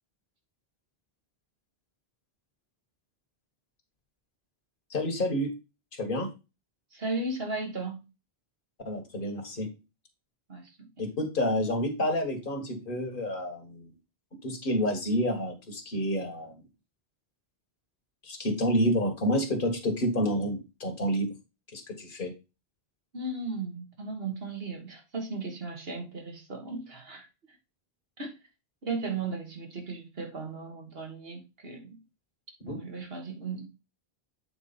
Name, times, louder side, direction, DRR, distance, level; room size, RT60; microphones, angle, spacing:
voice 1, 4.9-5.5 5.9-6.3 8.9-9.7 11.0-13.9 14.4-16.5 18.2-21.3 21.7-22.3 32.7-32.8, equal, 55° left, 1.8 m, -29 dB
voice 2, 6.9-8.1 10.5-10.9 23.1-27.3 28.2-28.4 28.8-32.0 32.6-33.7, right 3 dB, 65° right, 2.1 m, -36 dB
8.1 x 4.5 x 4.2 m
omnidirectional pair, 1.1 m